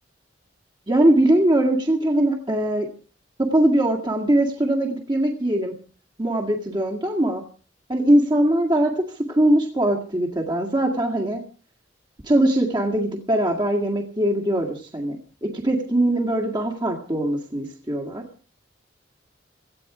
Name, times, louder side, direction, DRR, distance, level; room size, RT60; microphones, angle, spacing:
voice 1, 0.9-2.9 3.4-5.7 6.2-7.4 7.9-11.4 12.3-18.2, right 1 dB, 25° right, 0 dB, 2.0 m, -21 dB
17.5 x 14.5 x 4.9 m, 0.39 s
head